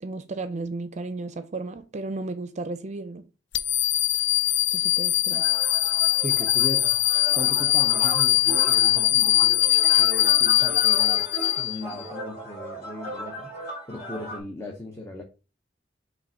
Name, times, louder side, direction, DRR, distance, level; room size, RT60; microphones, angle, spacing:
voice 1, 0.0-3.2 4.7-5.5, right 3 dB, 40° right, 0.5 m, -34 dB
sound 1, 3.5-12.0, left 14 dB, 85° left, 0.5 m, -21 dB
sound 2, 5.3-14.4, equal, 40° left, 2.6 m, -37 dB
voice 2, 6.2-9.6 10.0-11.3 11.6-15.2, left 1 dB, 15° left, 0.7 m, -37 dB
5.4 x 3.2 x 5.5 m
head